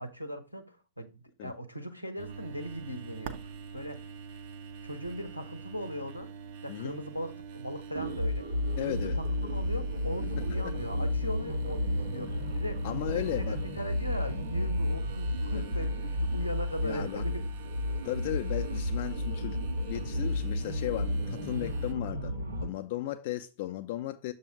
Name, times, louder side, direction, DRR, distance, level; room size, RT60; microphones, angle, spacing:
voice 1, 0.0-4.0 4.8-6.3 6.6-17.4, equal, 90° left, 0.6 m, -39 dB
sound 1, 2.2-21.9, right 6 dB, 50° right, 0.6 m, -46 dB
voice 2, 6.7-7.0 8.8-9.2 10.4-10.7 12.8-13.6 15.5-15.6 16.8-17.2 18.0-22.3 22.6-24.3, left 14 dB, 50° left, 0.4 m, -36 dB
sound 2, 7.9-22.7, left 1 dB, 85° right, 1.1 m, -32 dB
6.8 x 2.7 x 5.7 m
figure-of-eight pair, 90°, 0 cm